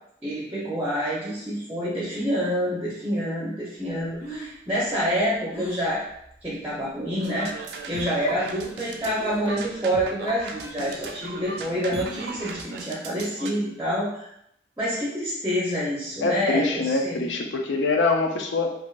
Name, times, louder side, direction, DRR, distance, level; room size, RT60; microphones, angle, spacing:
voice 1, 0.2-6.0 6.4-7.5 7.9-14.3 14.8-17.2, equal, 10° right, -6 dB, 0.5 m, -27 dB
Breathing, 4.2-7.5 7.9-8.4 8.6-9.6 10.0-12.5, equal, 45° left, 0.7 m, -43 dB
sound 1, 7.2-13.5, right 4 dB, 60° right, 0.3 m, -37 dB
voice 2, 16.2-18.7, left 3 dB, 85° left, 3 dB, 0.5 m, -24 dB
3.3 x 2.5 x 2.3 m, 0.77 s
head